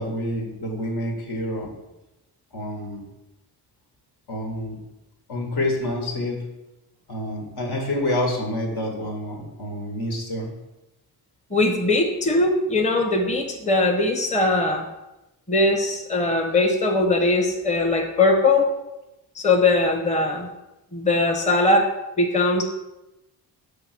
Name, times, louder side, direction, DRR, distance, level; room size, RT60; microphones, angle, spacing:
voice 1, 0.0-1.7 2.5-3.0 4.3-4.8 5.3-6.4 7.1-10.5, left 1 dB, 70° left, 0 dB, 1.7 m, -28 dB
voice 2, 11.5-14.9 15.5-18.7 19.3-20.5 20.9-21.9 22.2-22.6, left 2 dB, 15° left, 2 dB, 0.9 m, -20 dB
5.8 x 3.6 x 6.0 m, 0.96 s
cardioid pair, 80°, 40 cm